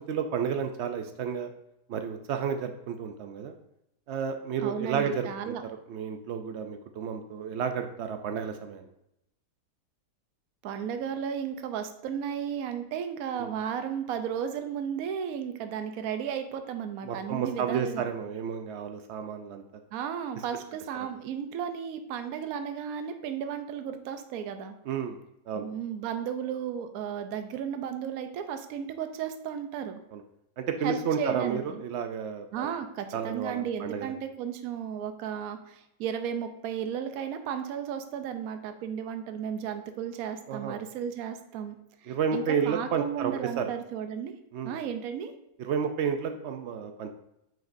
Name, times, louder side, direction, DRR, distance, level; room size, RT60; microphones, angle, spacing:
voice 1, 0.0-1.5 1.9-3.6 4.1-5.5 5.9-8.9 13.4-13.6 17.0-19.6 24.9-25.2 25.5-25.7 30.1-30.2 30.6-32.7 33.1-34.1 40.5-40.8 42.1-43.7 44.5-44.8 45.6-47.1, right 7 dB, 85° right, 6 dB, 0.6 m, -31 dB
voice 2, 4.6-5.6 10.6-18.1 19.9-24.7 25.5-30.0 30.8-31.8 32.5-41.8 42.0-44.3 44.6-45.3, right 8 dB, 70° right, 8 dB, 1.1 m, -34 dB
9.1 x 5.0 x 2.6 m, 0.81 s
omnidirectional pair, 1.7 m